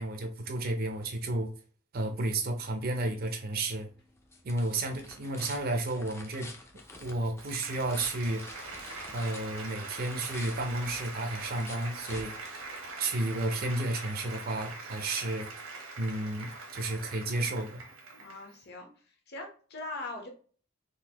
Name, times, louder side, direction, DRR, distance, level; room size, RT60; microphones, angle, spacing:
voice 1, 0.0-1.5 1.9-3.9 4.4-6.5 7.0-8.4 9.1-12.6 13.0-15.5 16.0-17.8, right 2 dB, 45° right, 0.5 m, -32 dB
sound 1, 3.6-13.1, left 2 dB, 15° left, 0.4 m, -49 dB
Applause, 7.0-18.6, right 3 dB, 80° right, 1.0 m, -43 dB
voice 2, 18.2-18.9 19.3-20.3, left 2 dB, 50° left, 0.9 m, -41 dB
3.9 x 2.5 x 2.8 m
head